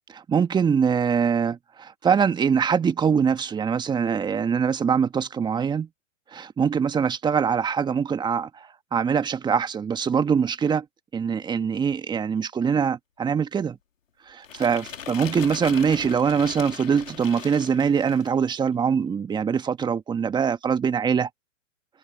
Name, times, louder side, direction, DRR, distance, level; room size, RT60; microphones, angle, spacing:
voice 1, 0.1-5.9 6.3-10.9 11.1-13.8 14.3-21.3, right 6 dB, 10° right, 1.7 m, -23 dB
sound 1, 14.4-18.4, left 8 dB, 80° left, 3.4 m, -38 dB
hypercardioid pair, 130°, 39 cm